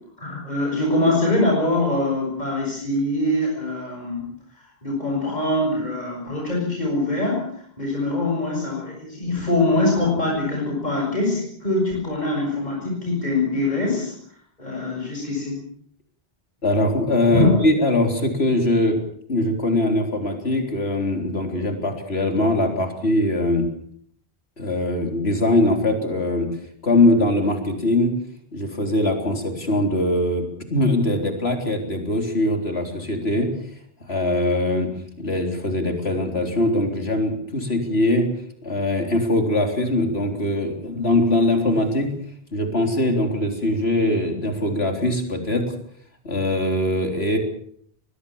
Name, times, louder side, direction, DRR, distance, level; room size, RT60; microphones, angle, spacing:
voice 1, 0.2-4.2 4.5-14.1 14.6-15.6 17.3-17.5, left 2 dB, 45° left, -1 dB, 6.4 m, -23 dB
voice 2, 16.6-19.0 19.3-23.7 24.6-26.5 26.8-28.1 28.5-30.4 30.7-33.5 34.1-34.9 35.2-38.3 38.6-42.1 42.5-45.7 46.2-47.4, left 1 dB, 90° left, 4 dB, 4.1 m, -21 dB
23.5 x 19.5 x 7.2 m, 0.63 s
omnidirectional pair, 1.0 m